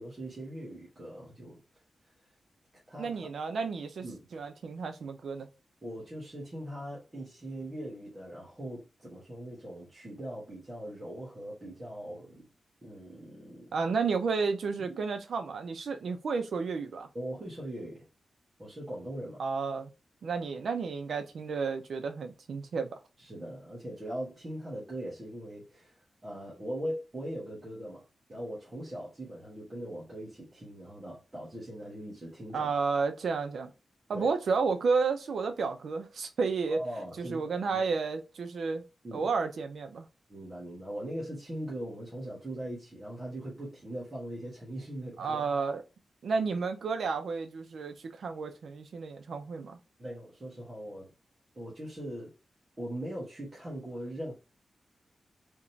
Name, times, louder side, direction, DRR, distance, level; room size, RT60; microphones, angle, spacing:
voice 1, 0.0-1.6 2.9-3.3 4.0-4.2 5.8-12.5 12.8-13.7 14.9-15.0 17.1-18.1 18.6-19.4 23.2-28.0 28.3-32.7 34.1-34.3 36.7-37.9 39.0-39.3 40.3-45.4 50.0-51.1 51.5-52.3 52.8-54.3, right 1 dB, 25° right, 1.3 m, -40 dB
voice 2, 3.0-4.1 4.3-5.5 13.7-17.1 19.4-19.9 20.2-23.0 32.5-33.7 34.1-36.8 37.2-38.8 39.1-40.1 45.2-45.8 46.2-49.8, right 4 dB, 75° right, 0.6 m, -31 dB
3.6 x 3.0 x 2.7 m
wide cardioid pair, 155°, 0 cm